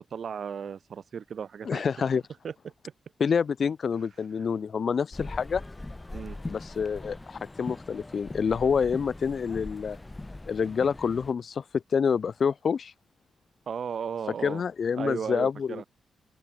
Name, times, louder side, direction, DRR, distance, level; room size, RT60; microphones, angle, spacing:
voice 1, 0.0-1.9 2.4-2.7 4.4-4.5 6.1-6.4 13.7-14.6 15.0-15.9, right 7 dB, 65° right, 5.6 m, -35 dB
voice 2, 1.7-2.2 3.2-5.6 6.5-10.0 10.5-12.9 14.4-15.8, left 6 dB, 60° left, 0.5 m, -27 dB
sound 1, 5.1-11.3, left 2 dB, 20° left, 3.9 m, -41 dB
open air
cardioid pair, 70°, 0 cm